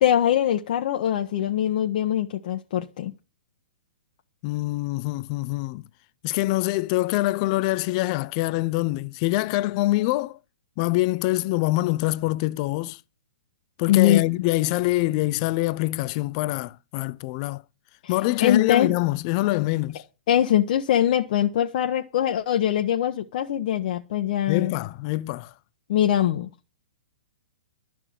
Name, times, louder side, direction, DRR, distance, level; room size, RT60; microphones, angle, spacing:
voice 1, 0.0-3.1 13.9-14.2 18.4-18.9 20.3-24.7 25.9-26.5, left 11 dB, 55° left, 1.1 m, -22 dB
voice 2, 4.4-5.8 6.2-10.4 10.8-13.0 13.8-17.6 18.1-20.0 24.5-25.5, left 19 dB, 40° left, 0.6 m, -25 dB
12.0 x 6.0 x 8.6 m
hypercardioid pair, 130°, 5 cm